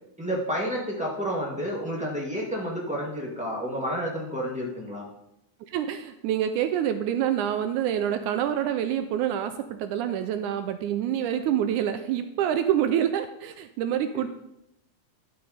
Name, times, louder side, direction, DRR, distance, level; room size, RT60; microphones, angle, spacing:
voice 1, 0.2-5.0 14.1-14.3, equal, 10° right, -4 dB, 0.4 m, -30 dB
voice 2, 5.6-14.3, right 10 dB, 80° right, 9 dB, 1.9 m, -27 dB
11.5 x 6.0 x 5.0 m, 0.84 s
omnidirectional pair, 3.7 m